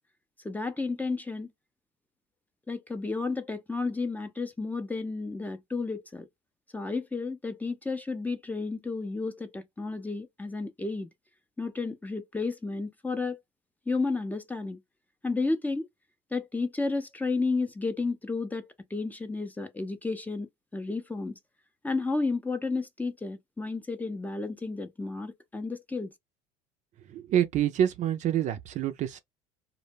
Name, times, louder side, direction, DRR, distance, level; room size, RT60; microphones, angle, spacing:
voice 1, 0.4-1.5 2.7-6.3 6.7-11.1 11.6-13.4 13.9-14.8 15.2-15.9 16.3-18.6 18.9-21.4 21.8-26.1, left 3 dB, 10° left, 0.5 m, -32 dB
voice 2, 27.0-29.2, right 10 dB, 50° right, 0.5 m, -27 dB
2.1 x 2.1 x 3.3 m
supercardioid pair, 90°, 16 cm